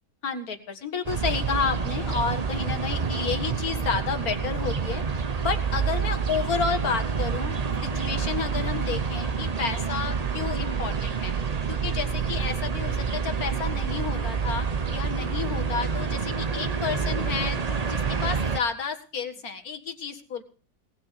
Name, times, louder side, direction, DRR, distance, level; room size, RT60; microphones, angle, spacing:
voice 1, 0.2-5.0 5.4-11.3 11.7-14.7 14.9-20.4, left 6 dB, 55° left, 7 dB, 2.1 m, -31 dB
sound 1, 1.0-18.6, right 6 dB, 55° right, 0.4 m, -28 dB
18.5 x 6.5 x 8.2 m, 0.39 s
omnidirectional pair, 2.0 m